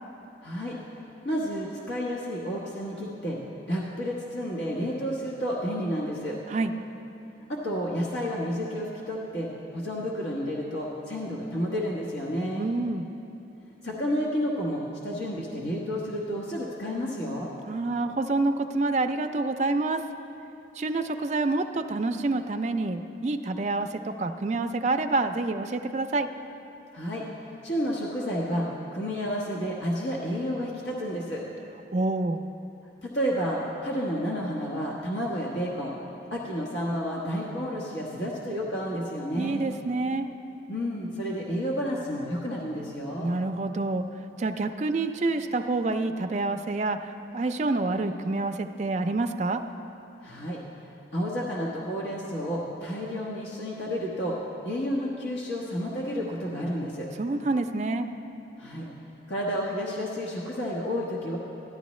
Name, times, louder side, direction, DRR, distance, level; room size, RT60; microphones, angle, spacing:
voice 1, 0.4-0.7 1.2-3.4 3.7-6.4 7.5-12.7 13.8-17.5 26.9-27.2 27.6-31.4 33.0-35.9 36.3-39.6 40.7-43.3 50.2-50.6 51.1-54.4 54.6-57.1 58.6-58.9 59.3-61.4, equal, 75° left, -4 dB, 1.1 m, -31 dB
voice 2, 12.6-13.1 17.7-20.1 20.8-26.3 31.9-32.4 39.4-40.3 43.2-44.1 44.4-49.6 57.2-58.1, right 2 dB, 40° right, 7 dB, 0.4 m, -27 dB
13.0 x 11.0 x 3.1 m, 2.9 s
head